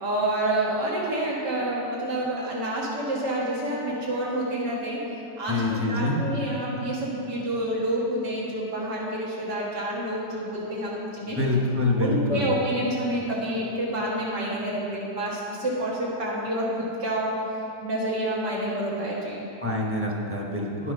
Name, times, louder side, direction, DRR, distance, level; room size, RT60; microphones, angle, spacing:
voice 1, 0.0-5.0 5.4-11.4 11.9-16.7 17.0-17.3 17.8-19.5, right 1 dB, 80° right, -6 dB, 2.1 m, -28 dB
voice 2, 5.5-6.2 11.3-12.5 19.6-20.9, left 2 dB, 10° right, -1 dB, 0.8 m, -25 dB
10.0 x 8.6 x 5.4 m, 2.9 s
omnidirectional pair, 1.8 m